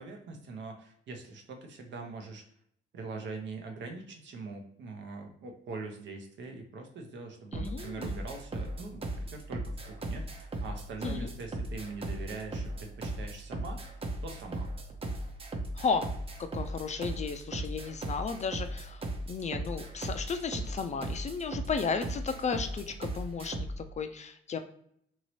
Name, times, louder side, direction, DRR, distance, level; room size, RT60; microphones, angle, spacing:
voice 1, 0.0-2.4 2.9-13.8 14.2-14.7, right 3 dB, 65° right, 3 dB, 0.8 m, -42 dB
voice 2, 7.5-8.2 11.0-11.3 15.7-16.1 16.4-24.6, left 5 dB, 35° left, 8 dB, 0.4 m, -34 dB
sound 1, 7.5-23.8, right 1 dB, 30° right, 0.6 m, -37 dB
3.0 x 2.8 x 3.0 m, 0.68 s
cardioid pair, 90°, 20 cm